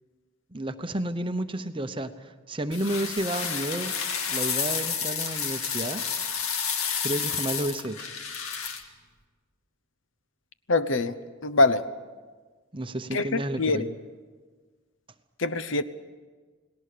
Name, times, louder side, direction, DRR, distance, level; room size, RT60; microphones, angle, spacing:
voice 1, 0.5-3.9 4.3-6.0 7.0-8.1 12.7-13.9, right 1 dB, 25° right, 8 dB, 0.9 m, -31 dB
sound 1, 2.7-8.8, left 6 dB, 85° left, 2.1 m, -30 dB
voice 2, 10.7-11.1 11.4-11.9 13.1-13.9 15.4-15.8, left 2 dB, 60° left, 12 dB, 0.9 m, -24 dB
29.5 x 19.0 x 6.8 m, 1.4 s
head